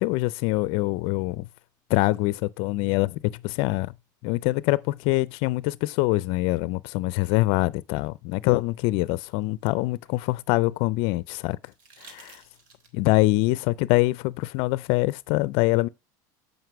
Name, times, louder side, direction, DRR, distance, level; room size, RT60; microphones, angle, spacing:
voice 1, 0.0-1.5 1.9-3.9 4.2-11.6 12.0-12.4 12.9-15.9, left 20 dB, 60° left, 0.4 m, -24 dB
sound 1, 8.5-10.7 11.6-13.2 14.8-14.9, right 4 dB, 90° right, 1.8 m, -54 dB
7.9 x 5.3 x 4.6 m
supercardioid pair, 130°, 11 cm